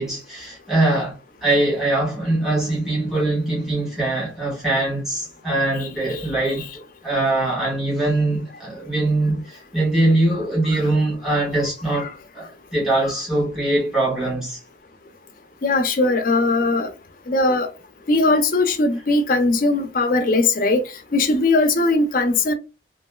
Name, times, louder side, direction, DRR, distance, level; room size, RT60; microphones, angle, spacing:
voice 1, 0.0-14.6, right 2 dB, ahead, 1.4 m, -22 dB
voice 2, 5.8-6.2 10.8-10.9 12.0-12.1 15.6-16.9 17.3-17.7 18.1-20.8 21.1-22.5, left 2 dB, 50° left, 0.5 m, -19 dB
3.0 x 2.5 x 2.2 m
head